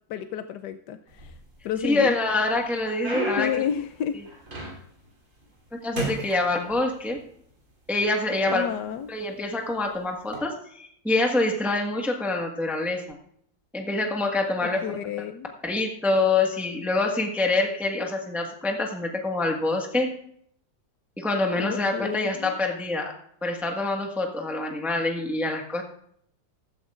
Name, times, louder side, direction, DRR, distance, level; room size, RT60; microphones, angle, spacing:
voice 1, 0.1-1.4 1.6-2.2 3.4-4.2 8.5-9.1 14.6-15.5 21.6-22.5, left 9 dB, 70° left, 9 dB, 1.2 m, -31 dB
sound 1, 1.1-1.8 2.3-5.1 5.4-5.7 5.9-7.2 8.0-8.1 8.8-9.0 10.2-10.4, right 1 dB, 45° right, 3.5 m, -34 dB
voice 2, 1.8-3.5 5.8-7.2 7.9-8.7 9.1-13.2 13.7-14.9 15.6-20.1 21.2-23.1 23.4-25.8, left 2 dB, ahead, 1 dB, 1.3 m, -26 dB
15.5 x 13.0 x 2.5 m, 0.65 s
omnidirectional pair, 2.0 m